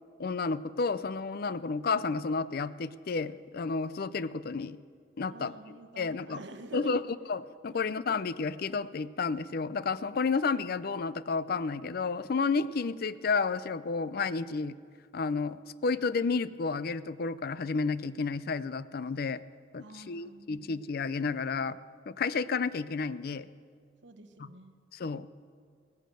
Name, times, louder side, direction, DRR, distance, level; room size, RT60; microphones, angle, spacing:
voice 1, 0.2-4.8 5.2-6.4 6.7-7.0 7.3-14.8 15.1-19.4 19.7-21.8 22.1-23.5 24.4-24.5 24.9-25.3, left 4 dB, 50° left, 16 dB, 0.5 m, -31 dB
voice 2, 5.3-7.0 19.8-20.8 24.0-24.8, right 2 dB, 65° right, 7 dB, 1.2 m, -47 dB
16.5 x 10.5 x 7.6 m, 2.2 s
head